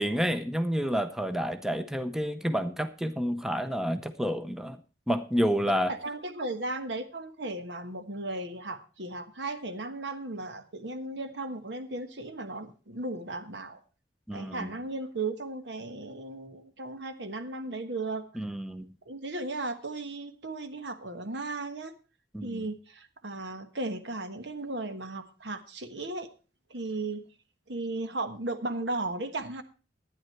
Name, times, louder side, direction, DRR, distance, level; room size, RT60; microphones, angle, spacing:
voice 1, 0.0-4.8 5.1-5.9 14.3-14.7 18.4-18.9 22.3-22.6, equal, 5° right, 9 dB, 0.7 m, -29 dB
voice 2, 5.9-13.8 14.3-18.2 19.0-21.9 22.4-26.3 26.7-27.2 27.7-29.6, right 2 dB, 75° right, 9 dB, 1.3 m, -36 dB
12.0 x 9.8 x 4.5 m, 0.35 s
head